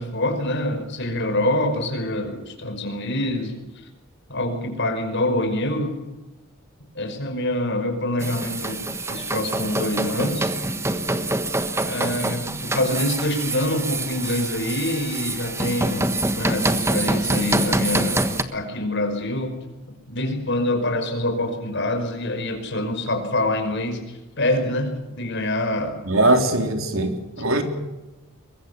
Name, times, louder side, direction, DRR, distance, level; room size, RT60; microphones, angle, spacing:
voice 1, 0.0-3.5 4.3-5.9 6.9-8.8 9.1-10.5 11.8-19.6 20.1-24.0 24.4-26.0, left 1 dB, 55° left, 5.4 m, -25 dB
sound 1, 8.2-18.4, right 2 dB, 15° right, 1.3 m, -25 dB
voice 2, 26.0-27.6, right 2 dB, 70° right, 3.6 m, -21 dB
23.5 x 22.5 x 7.2 m
head